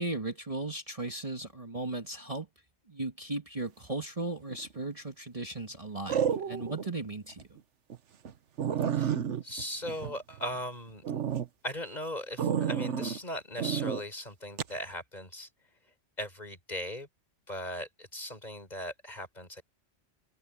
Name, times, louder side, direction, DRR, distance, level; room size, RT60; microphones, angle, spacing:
voice 1, 0.0-2.5 2.9-7.6, right 2 dB, 30° right, 1.8 m, -36 dB
sound 1, 4.5-4.9 6.1-6.9 7.3-7.4 7.9-8.0 8.3-8.4 8.6-10.6 11.0-11.5 12.4-13.2 13.6-14.0 14.6-14.8, right 8 dB, 85° right, 1.3 m, -31 dB
voice 2, 9.4-11.0 11.6-15.5 16.2-17.1 17.5-19.6, equal, 40° left, 5.4 m, -38 dB
omnidirectional pair, 1.2 m